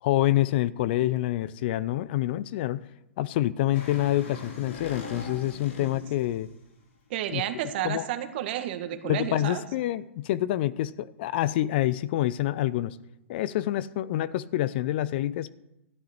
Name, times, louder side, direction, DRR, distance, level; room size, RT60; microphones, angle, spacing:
voice 1, 0.0-2.8 3.2-6.5 7.3-7.4 7.8-8.0 9.0-13.0 13.3-15.5, left 14 dB, 50° left, 17 dB, 0.5 m, -27 dB
sound 1, 3.7-6.5, left 3 dB, 65° left, 3.5 m, -41 dB
voice 2, 7.1-9.6, right 12 dB, 50° right, 8 dB, 1.6 m, -31 dB
13.0 x 10.5 x 4.4 m, 0.87 s
hypercardioid pair, 110°, 7 cm